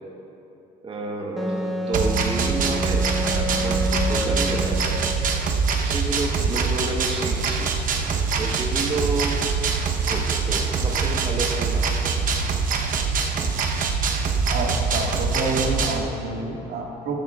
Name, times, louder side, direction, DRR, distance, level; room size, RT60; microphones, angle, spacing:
voice 1, 0.8-5.2 5.8-7.7 8.4-9.4 9.7-11.9, right 3 dB, 30° right, 0 dB, 1.2 m, -30 dB
Wind instrument woodwind instrument, 1.4-5.4, equal, ahead, 1.1 m, -29 dB
sound 1, 1.9-16.0, right 5 dB, 55° right, 1.0 m, -24 dB
voice 2, 14.5-17.2, right 2 dB, 80° right, -1 dB, 1.8 m, -28 dB
16.0 x 12.0 x 2.4 m, 3.0 s
cardioid pair, 110°, 17 cm